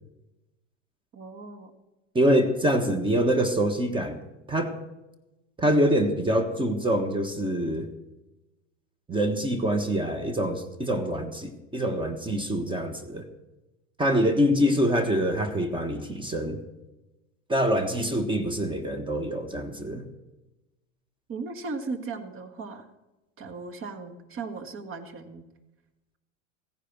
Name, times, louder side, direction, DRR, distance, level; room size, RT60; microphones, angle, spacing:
voice 1, 1.1-1.7 21.3-22.9 23.4-25.4, right 4 dB, 35° right, 9 dB, 1.9 m, -37 dB
voice 2, 2.1-4.2 4.5-4.8 5.6-7.9 9.1-13.3 14.0-16.6 17.5-20.1, equal, 15° right, 8 dB, 1.4 m, -25 dB
15.5 x 10.0 x 6.1 m, 1.0 s
hypercardioid pair, 100°, 38 cm